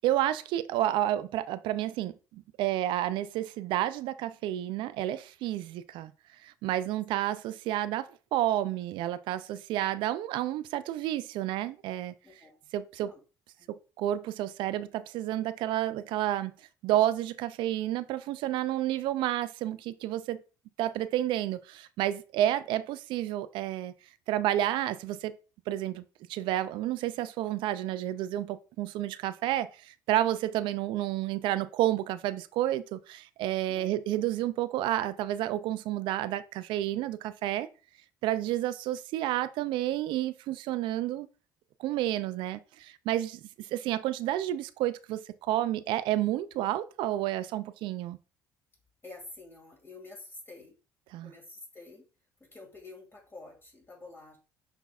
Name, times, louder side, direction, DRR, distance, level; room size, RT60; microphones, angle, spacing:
voice 1, 0.0-6.1 6.4-12.1 12.7-13.1 13.7-16.5 16.8-20.4 20.8-23.9 24.3-25.3 25.7-26.0 26.3-37.7 38.2-41.3 41.8-43.4 43.7-48.2 51.1-51.3, right 13 dB, 70° right, 0.3 m, -30 dB
voice 2, 12.2-12.6 13.0-13.2 13.6-13.7 33.7-33.9 49.0-50.8 51.2-52.1 52.4-54.4, left 2 dB, 30° left, 2.1 m, -48 dB
5.7 x 3.4 x 2.4 m
supercardioid pair, 75°, 9 cm